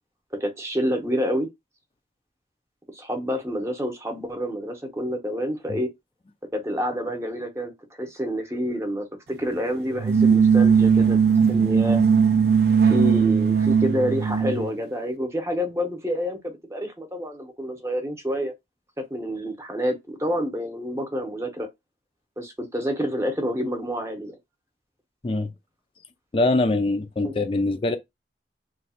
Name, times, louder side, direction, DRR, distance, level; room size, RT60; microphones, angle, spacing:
voice 1, 0.4-1.5 2.9-5.9 6.5-11.2 11.5-12.0 12.8-18.5 19.1-21.7 22.4-24.4 27.2-27.3, equal, 15° right, 0.8 m, -28 dB
sound 1, 10.0-14.7, right 6 dB, 60° right, 0.4 m, -18 dB
voice 2, 26.3-28.0, left 2 dB, 30° left, 0.4 m, -23 dB
3.1 x 2.3 x 4.2 m
head